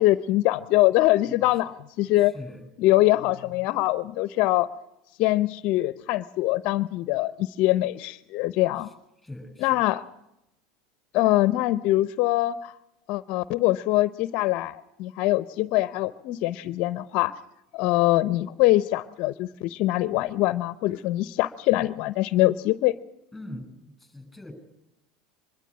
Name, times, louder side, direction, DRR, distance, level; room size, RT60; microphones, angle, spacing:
voice 1, 0.0-2.3 2.8-4.7 5.2-8.9 9.6-10.0 11.1-12.7 13.1-17.4 17.7-22.9, left 17 dB, 60° left, 16 dB, 0.8 m, -23 dB
voice 2, 2.1-2.7 8.8-8.9 9.2-9.8 23.3-24.5, left 1 dB, ahead, 8 dB, 7.0 m, -42 dB
24.5 x 12.5 x 10.0 m, 0.90 s
supercardioid pair, 100°, 2 cm